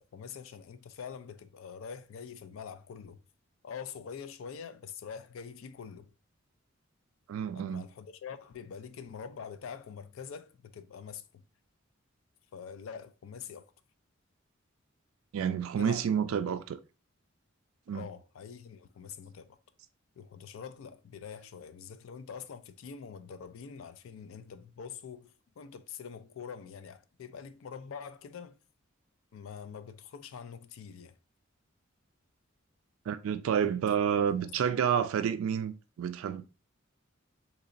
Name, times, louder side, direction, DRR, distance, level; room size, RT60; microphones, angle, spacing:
voice 1, 0.0-3.2 3.6-6.1 7.5-11.4 12.5-13.7 15.5-16.6 17.9-19.5 20.2-28.6 29.3-31.1 34.1-34.6, left 6 dB, 70° left, 0.4 m, -45 dB
voice 2, 7.3-7.8 15.3-16.8 17.9-18.1 33.1-36.4, right 8 dB, 75° right, 0.3 m, -29 dB
3.9 x 2.9 x 2.5 m
head